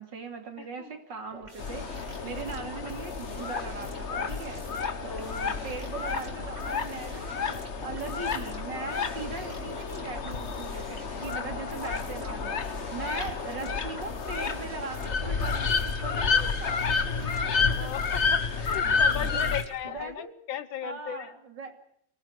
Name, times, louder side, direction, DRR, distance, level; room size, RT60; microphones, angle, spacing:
voice 1, 0.0-4.7 5.0-12.6 12.9-18.1 18.8-19.5 19.8-20.3 20.8-21.8, right 4 dB, 70° right, 5 dB, 3.4 m, -40 dB
voice 2, 0.6-1.0 4.9-5.3 11.4-11.7 12.6-13.1 16.8-16.9 17.3-21.3, left 10 dB, 90° left, 15 dB, 1.9 m, -38 dB
sound 1, 1.3-20.0, right 1 dB, 20° right, 3.4 m, -48 dB
sound 2, 1.6-19.6, left 5 dB, 40° left, 1.4 m, -30 dB
25.0 x 18.0 x 6.6 m, 0.68 s
omnidirectional pair, 2.0 m